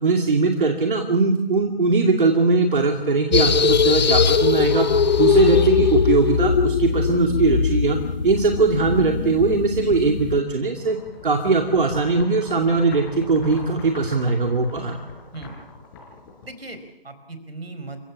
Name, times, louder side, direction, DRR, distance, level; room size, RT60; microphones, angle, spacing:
voice 1, 0.0-4.9 5.2-8.0 8.2-11.0 11.2-15.0, right 3 dB, 60° right, 4 dB, 2.5 m, -20 dB
sound 1, 3.3-10.4, left 5 dB, 45° left, 1.5 m, -20 dB
sound 2, 10.7-16.9, left 4 dB, 25° left, 4.9 m, -41 dB
voice 2, 16.4-18.0, right 2 dB, 80° right, 9 dB, 4.7 m, -37 dB
29.5 x 16.0 x 7.1 m, 0.97 s
figure-of-eight pair, 150°, 30 cm